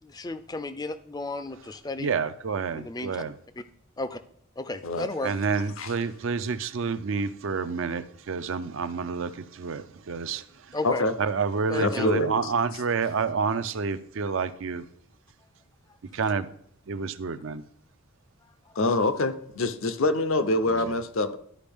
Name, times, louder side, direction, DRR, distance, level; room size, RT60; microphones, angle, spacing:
voice 1, 0.0-2.1 2.7-3.2 4.0-4.2 4.6-5.4 10.7-11.1 11.7-12.1 18.7-18.8, left 2 dB, 20° left, 12 dB, 0.4 m, -34 dB
voice 2, 2.0-3.3 5.2-10.8 11.2-14.9 16.1-16.5 16.9-17.6 20.7-21.0, right 5 dB, 65° right, 12 dB, 0.5 m, -29 dB
voice 3, 11.8-12.5 18.8-21.4, left 2 dB, 70° left, 11 dB, 0.6 m, -25 dB
12.0 x 5.0 x 3.5 m, 0.67 s
head